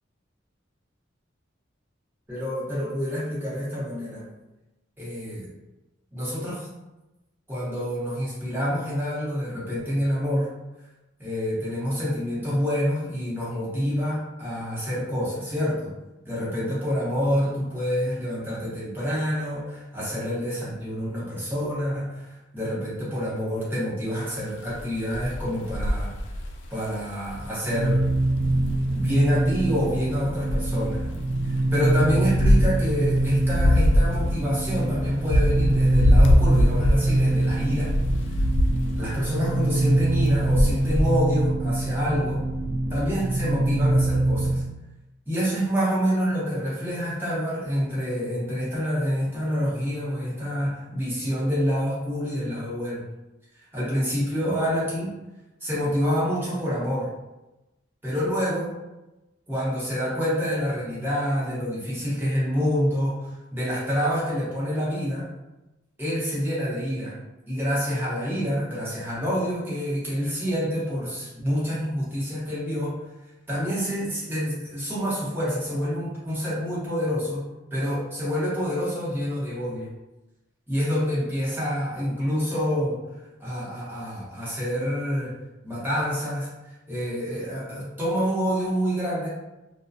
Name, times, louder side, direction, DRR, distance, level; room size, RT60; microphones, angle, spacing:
voice 1, 2.3-4.2 5.0-5.5 6.1-6.7 7.5-10.5 11.2-15.9 16.2-26.1 26.7-28.0 28.9-31.0 31.4-37.9 39.0-42.4 42.9-44.6 45.3-53.0 53.7-55.1 55.6-57.1 58.0-58.7 59.5-65.3 66.0-67.2 67.5-73.0 73.5-77.5 77.7-79.9 80.7-85.3 85.6-86.5 86.9-89.3, equal, 10° right, -9 dB, 0.8 m, -27 dB
sound 1, 24.7-27.5 29.2-30.0 30.3-31.2 31.8-39.5 40.1-41.2, left 1 dB, 65° left, 0.3 m, -23 dB
sound 2, 27.6-44.6, right 2 dB, 70° right, 0.4 m, -24 dB
2.3 x 2.1 x 2.5 m, 1.0 s
head